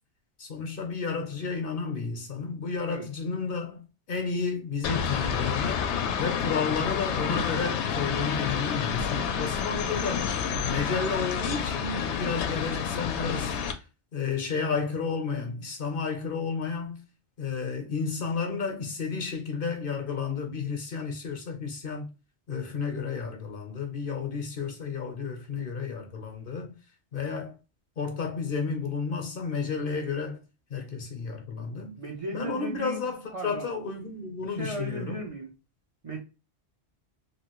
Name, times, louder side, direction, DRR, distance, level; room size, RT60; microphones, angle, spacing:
voice 1, 0.4-3.8 4.1-5.9 6.2-10.3 10.6-13.6 14.1-17.0 17.4-22.1 22.5-26.7 27.1-27.5 28.0-30.4 30.7-31.9 32.3-35.2, left 5 dB, 60° left, 0.9 m, -32 dB
sound 1, 4.8-13.7, left 7 dB, 90° left, 0.9 m, -29 dB
voice 2, 32.0-33.7 34.4-35.5 36.0-36.2, equal, 35° right, 0.6 m, -36 dB
3.1 x 2.5 x 2.9 m
omnidirectional pair, 1.1 m